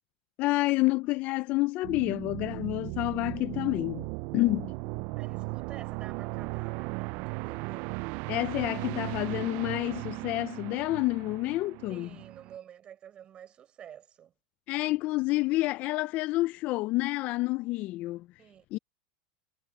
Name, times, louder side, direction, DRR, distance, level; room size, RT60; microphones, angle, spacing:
voice 1, 0.4-4.1 4.3-4.7 8.3-12.1 14.7-18.3 18.7-18.8, left 19 dB, 45° left, 0.4 m, -29 dB
sound 1, 1.8-12.6, right 26 dB, 55° right, 0.4 m, -37 dB
voice 2, 5.2-7.9 11.9-14.3 18.4-18.7, right 9 dB, 30° right, 5.4 m, -50 dB
supercardioid pair, 125°, 3 cm